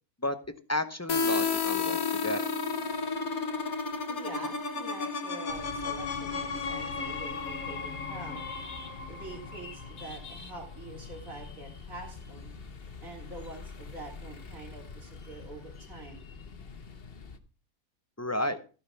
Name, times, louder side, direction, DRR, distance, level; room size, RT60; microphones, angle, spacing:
voice 1, 0.7-2.5 18.2-18.6, left 1 dB, 15° left, 10 dB, 0.6 m, -32 dB
sound 1, 1.1-10.7, left 4 dB, 75° left, 1.8 m, -33 dB
voice 2, 4.1-8.5 9.1-12.5 13.0-16.3, right 3 dB, 65° right, -2 dB, 3.6 m, -45 dB
sound 2, 5.5-17.4, left 5 dB, 45° left, 1.2 m, -45 dB
15.0 x 5.9 x 5.7 m, 0.37 s
omnidirectional pair, 1.5 m